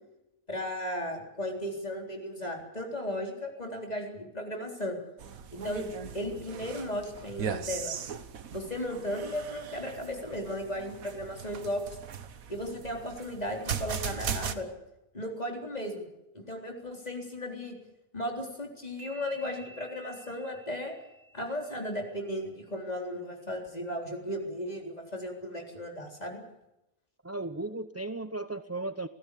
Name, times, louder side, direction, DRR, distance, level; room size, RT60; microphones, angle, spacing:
voice 1, 0.5-5.0 5.5-5.9 6.1-7.9 8.5-11.8 12.5-14.7 15.1-16.1 16.3-17.8 18.1-20.9 21.3-26.4, left 1 dB, 30° left, 1 dB, 3.9 m, -35 dB
sound 1, 5.2-14.6, right 7 dB, 90° right, 1.6 m, -38 dB
sound 2, 19.0-22.5, right 1 dB, 45° right, 5.2 m, -53 dB
voice 2, 27.2-29.1, right 2 dB, 15° right, 11 dB, 0.5 m, -35 dB
26.0 x 16.0 x 8.5 m, 0.92 s
omnidirectional pair, 1.4 m